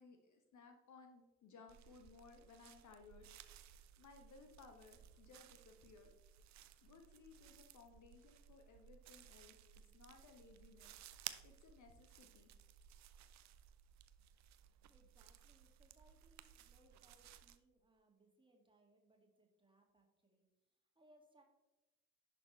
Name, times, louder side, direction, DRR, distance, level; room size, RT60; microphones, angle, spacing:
voice 1, 0.0-3.3 3.6-6.1 6.8-9.6 9.9-12.5, left 4 dB, 45° left, 5 dB, 1.1 m, -62 dB
sound 1, 1.7-17.6, right 11 dB, 40° right, 0.6 m, -58 dB
voice 2, 14.9-20.4 20.7-21.4, right 1 dB, 10° right, 2 dB, 2.1 m, -71 dB
11.0 x 6.1 x 3.2 m, 1.0 s
figure-of-eight pair, 45°, 43 cm